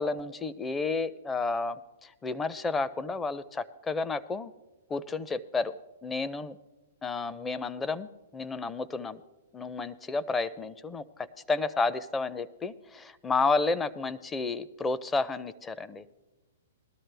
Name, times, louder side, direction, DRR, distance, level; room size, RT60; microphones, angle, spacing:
voice 1, 0.0-4.5 4.9-5.7 6.0-6.6 7.0-9.2 9.5-16.1, left 3 dB, 15° left, 14 dB, 0.5 m, -31 dB
20.0 x 13.0 x 3.4 m, 1.1 s
hypercardioid pair, 130°, 0 cm